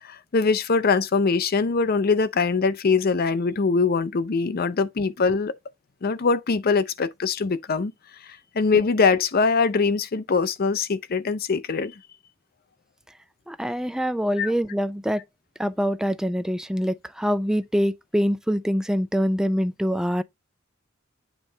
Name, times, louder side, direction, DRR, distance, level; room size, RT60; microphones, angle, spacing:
voice 1, 0.0-5.6 6.0-7.9 8.2-11.9 14.4-14.5, left 4 dB, 50° left, 0.5 m, -22 dB
voice 2, 13.5-15.2 15.6-20.2, equal, 5° right, 0.3 m, -24 dB
8.2 x 3.3 x 3.8 m
head